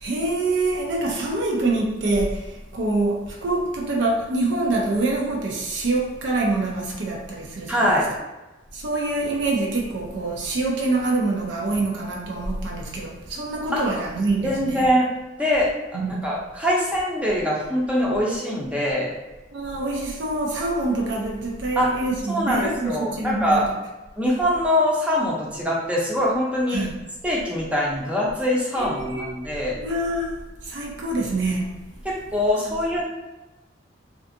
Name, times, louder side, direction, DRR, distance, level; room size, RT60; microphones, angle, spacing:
voice 1, 0.0-8.0 8.7-14.8 15.9-16.2 19.5-23.8 26.7-27.0 28.8-29.3 29.8-31.7 32.6-32.7, right 2 dB, 65° right, 0.5 m, -25 dB
voice 2, 7.7-8.1 13.7-13.8 14.4-15.1 15.4-15.7 16.1-19.1 21.8-21.9 22.3-23.6 24.2-26.9 27.2-29.8 32.0-33.0, equal, 5° right, 0.5 m, -23 dB
2.5 x 2.4 x 2.6 m
head